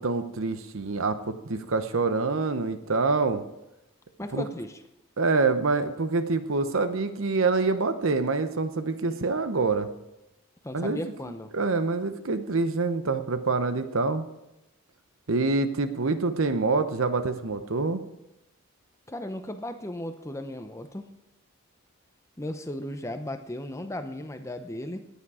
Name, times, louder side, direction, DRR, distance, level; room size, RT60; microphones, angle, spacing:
voice 1, 0.0-3.4 4.3-4.4 5.2-9.9 10.7-11.0 11.5-14.3 15.3-18.1, right 3 dB, 70° right, 11 dB, 0.9 m, -26 dB
voice 2, 4.2-4.8 10.6-11.5 19.1-21.1 22.4-25.1, left 1 dB, 15° left, 8 dB, 0.7 m, -36 dB
18.5 x 8.5 x 4.9 m, 0.95 s
head